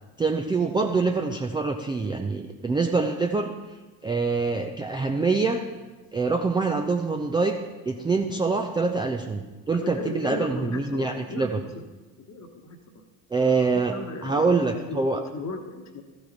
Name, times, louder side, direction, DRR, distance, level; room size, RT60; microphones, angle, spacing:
voice 1, 0.2-3.5 4.0-5.6 6.1-7.6 7.9-11.6 13.3-13.9 14.2-15.2, right 4 dB, 10° right, 3 dB, 0.5 m, -25 dB
voice 2, 9.7-11.7 12.3-12.8 13.9-16.0, left 3 dB, 35° left, 6 dB, 1.3 m, -36 dB
14.5 x 5.3 x 4.2 m, 1.2 s
figure-of-eight pair, 55°, 49 cm